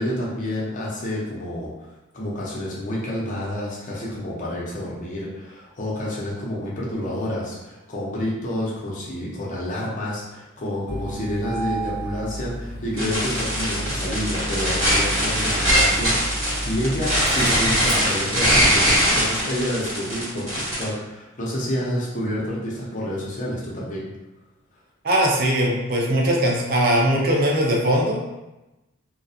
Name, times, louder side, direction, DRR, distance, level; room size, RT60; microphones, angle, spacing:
voice 1, 0.0-1.7 2.1-24.1, equal, 40° left, -5 dB, 0.6 m, -29 dB
Engine starting, 10.9-18.7, right 1 dB, 20° right, 0.9 m, -32 dB
sound 1, 13.0-20.9, equal, 75° right, 1.3 m, -21 dB
voice 2, 25.0-28.4, right 1 dB, 45° right, -1 dB, 0.4 m, -20 dB
2.4 x 2.2 x 2.6 m, 1.0 s
head